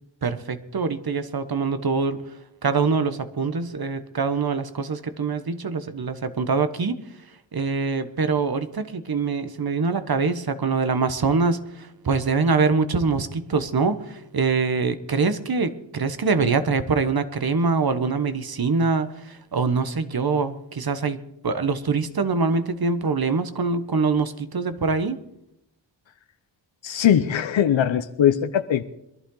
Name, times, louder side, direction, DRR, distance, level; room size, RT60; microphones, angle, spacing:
voice 1, 0.2-2.2 2.6-7.0 7.5-25.2, right 4 dB, 50° right, 11 dB, 1.2 m, -24 dB
voice 2, 26.8-28.8, left 9 dB, 75° left, 10 dB, 0.8 m, -20 dB
22.5 x 11.5 x 3.9 m, 0.81 s
cardioid pair, 55°, 46 cm